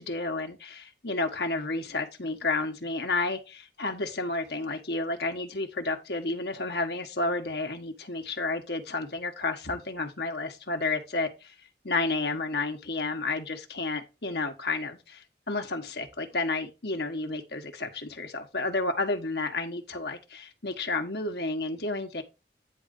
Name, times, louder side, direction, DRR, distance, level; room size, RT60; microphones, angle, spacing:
voice 1, 0.0-11.5 11.8-22.2, left 3 dB, 70° left, 1.5 m, -31 dB
9.8 x 3.9 x 5.4 m
head